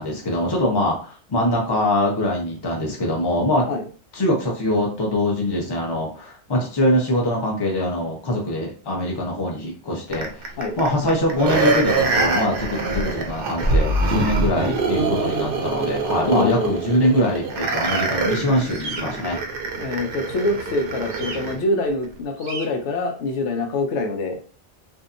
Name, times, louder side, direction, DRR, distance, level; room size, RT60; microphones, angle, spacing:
voice 1, 0.0-3.6 4.1-10.3 10.8-19.4, left 1 dB, 25° left, -1 dB, 0.6 m, -23 dB
sound 1, 10.1-21.6 22.0-22.1, right 3 dB, 60° right, 0.6 m, -24 dB
voice 2, 16.3-16.8 19.8-24.4, left 2 dB, 80° left, 4 dB, 0.9 m, -25 dB
sound 2, 17.6-18.0 18.6-19.0 21.1-21.4 22.4-22.7, right 3 dB, 85° right, 0.9 m, -34 dB
2.6 x 2.2 x 2.5 m, 0.40 s
omnidirectional pair, 1.2 m